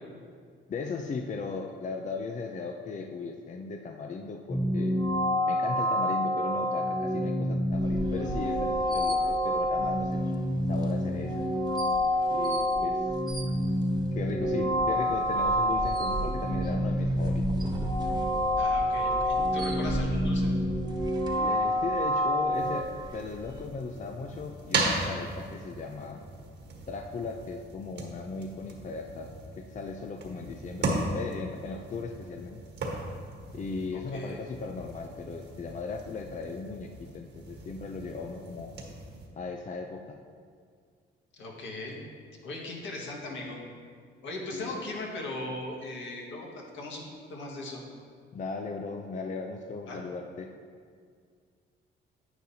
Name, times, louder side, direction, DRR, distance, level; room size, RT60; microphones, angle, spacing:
voice 1, 0.7-5.0 5.4-10.2 10.7-11.5 12.3-13.1 14.1-17.5 21.4-26.2 26.9-32.6 33.5-38.7 39.4-40.2 44.5-44.8 48.3-50.5, left 4 dB, 40° left, 4 dB, 0.5 m, -37 dB
sound 1, 4.5-22.8, equal, 20° left, 0.9 m, -28 dB
sound 2, 7.7-23.6, right 2 dB, 20° right, 1.1 m, -39 dB
voice 2, 18.6-20.5 33.9-34.4 41.4-42.0 42.4-43.6 44.2-47.8 49.9-50.0, left 2 dB, 70° left, -2 dB, 1.8 m, -38 dB
sound 3, 22.5-39.3, right 2 dB, 60° right, 1.5 m, -37 dB
9.9 x 8.6 x 2.8 m, 2.1 s
cardioid pair, 90°, 20 cm